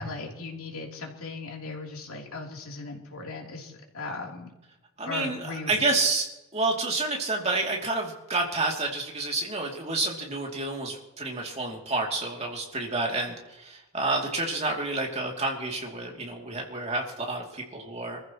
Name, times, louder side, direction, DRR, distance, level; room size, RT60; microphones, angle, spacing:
voice 1, 0.0-4.5 5.0-5.8, left 3 dB, 75° left, 0 dB, 3.4 m, -37 dB
voice 2, 5.0-6.3 6.5-18.2, right 2 dB, 30° right, 0 dB, 2.8 m, -29 dB
26.5 x 14.5 x 3.1 m, 0.96 s
head